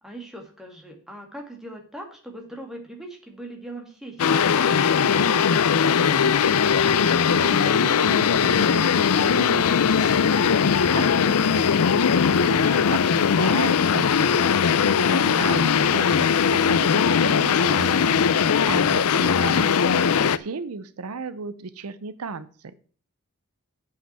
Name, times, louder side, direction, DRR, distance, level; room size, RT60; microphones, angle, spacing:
voice 1, 0.0-6.4 15.4-15.7, right 1 dB, ahead, 1 dB, 2.2 m, -41 dB
sound 1, 4.2-20.4, left 6 dB, 75° left, 0.5 m, -20 dB
voice 2, 7.0-22.8, right 4 dB, 75° right, 14 dB, 0.6 m, -36 dB
7.7 x 5.8 x 7.4 m, 0.43 s
head